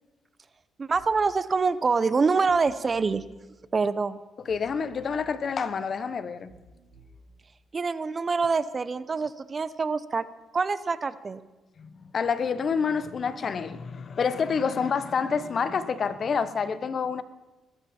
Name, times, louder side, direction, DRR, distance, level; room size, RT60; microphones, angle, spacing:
voice 1, 0.8-3.2 3.7-4.2 7.7-10.3 10.5-11.4, right 4 dB, 35° right, 0.7 m, -25 dB
sound 1, 0.9-1.3 2.5-3.3 4.5-5.3 6.5-7.3, right 1 dB, 65° right, 4.7 m, -54 dB
voice 2, 4.4-6.5 11.8-17.2, left 6 dB, 50° left, 0.9 m, -28 dB
21.5 x 12.5 x 4.3 m
cardioid pair, 90°, 0 cm